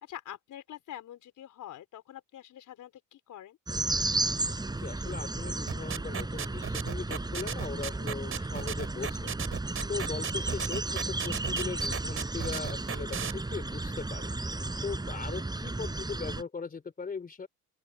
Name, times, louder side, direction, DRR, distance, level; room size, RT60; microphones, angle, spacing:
voice 1, 0.0-3.6, left 11 dB, 60° left, 4.0 m, -45 dB
sound 1, 3.7-16.4, right 2 dB, 10° right, 5.4 m, -33 dB
voice 2, 4.8-9.3 9.9-14.3 14.8-17.5, left 5 dB, 25° left, 3.2 m, -39 dB
sound 2, 5.7-13.3, right 7 dB, 40° right, 4.9 m, -35 dB
open air
cardioid pair, 130°, 34 cm